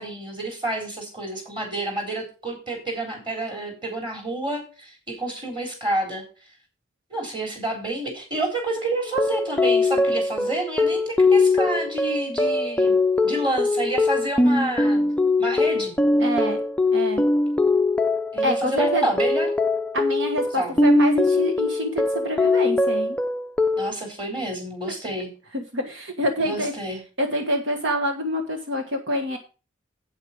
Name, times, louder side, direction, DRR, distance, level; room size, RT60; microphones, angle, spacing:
voice 1, 0.0-6.2 7.1-13.0 13.2-15.1 15.4-15.9 18.3-19.5 20.6-20.8 23.8-25.3 26.4-27.0, right 1 dB, 25° right, 2 dB, 3.9 m, -29 dB
sound 1, 9.1-23.9, left 2 dB, 5° left, 0.4 m, -21 dB
voice 2, 16.2-16.6 16.9-17.2 18.4-19.1 19.9-23.2 25.5-26.7 27.2-29.4, equal, 65° right, 5 dB, 1.4 m, -26 dB
8.5 x 8.2 x 5.2 m, 0.34 s
head